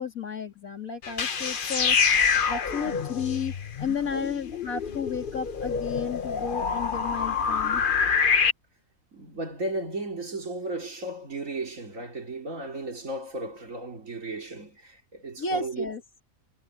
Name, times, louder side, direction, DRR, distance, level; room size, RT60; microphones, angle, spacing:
voice 1, 0.0-2.0 2.5-7.8 15.4-16.0, left 5 dB, 70° left, 3.0 m, -33 dB
sound 1, 1.0-8.5, left 6 dB, 40° left, 1.0 m, -26 dB
voice 2, 9.1-15.9, right 2 dB, 60° right, 3.7 m, -35 dB
omnidirectional pair, 1.5 m